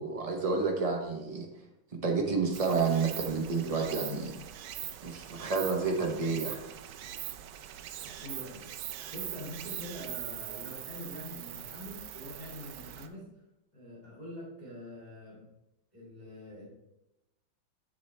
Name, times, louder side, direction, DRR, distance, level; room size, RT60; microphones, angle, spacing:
voice 1, 0.0-1.5 2.0-4.3 5.0-6.7, right 4 dB, 65° right, 1 dB, 0.3 m, -30 dB
Stream, 2.5-13.1, right 11 dB, 90° right, 0.8 m, -42 dB
voice 2, 8.0-8.6 9.1-13.3 13.7-15.4 15.9-16.6, left 1 dB, 20° left, -7 dB, 2.5 m, -45 dB
7.5 x 7.4 x 3.3 m, 0.94 s
omnidirectional pair, 2.2 m